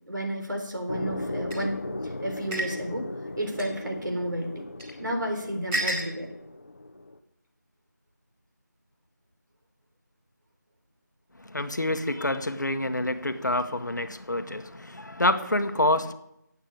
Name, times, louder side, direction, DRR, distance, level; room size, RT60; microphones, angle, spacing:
voice 1, 0.1-1.8 2.0-3.1 3.4-4.7 5.0-6.3, right 1 dB, 80° right, 3.6 m, -31 dB
sound 1, 0.9-7.2, left 2 dB, 45° left, 0.8 m, -37 dB
sound 2, 1.5-1.6 2.5-2.7 3.6-3.7 4.8-4.9 5.7-6.1, right 1 dB, 5° right, 1.4 m, -29 dB
voice 2, 11.4-16.1, left 1 dB, 70° left, 1.1 m, -27 dB
8.1 x 7.5 x 8.8 m
figure-of-eight pair, 170°, 10 cm